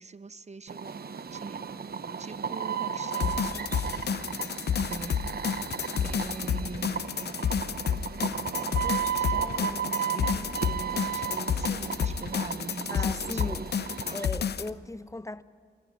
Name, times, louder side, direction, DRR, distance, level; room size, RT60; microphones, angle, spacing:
voice 1, 0.0-1.6 2.2-3.7 4.9-5.2 6.0-7.5 8.8-13.7 14.0-14.2, right 4 dB, 40° right, 0.7 m, -43 dB
sound 1, 0.7-14.3, right 7 dB, 60° right, 0.9 m, -34 dB
sound 2, 3.1-14.7, left 7 dB, 70° left, 0.6 m, -30 dB
voice 2, 12.9-13.7 14.1-15.4, left 2 dB, 15° left, 0.6 m, -37 dB
20.0 x 14.0 x 10.0 m
cardioid pair, 45°, 18 cm